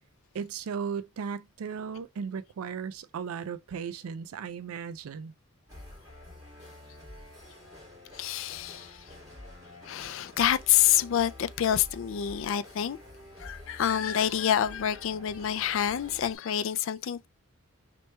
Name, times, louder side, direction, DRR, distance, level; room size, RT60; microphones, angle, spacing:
voice 1, 0.3-5.3, right 6 dB, 80° right, 0.4 m, -36 dB
sound 1, 5.7-16.4, left 1 dB, 15° right, 1.9 m, -48 dB
voice 2, 8.1-9.1 9.8-13.0 13.4-17.3, left 10 dB, 65° left, 0.3 m, -27 dB
3.2 x 3.0 x 4.4 m
head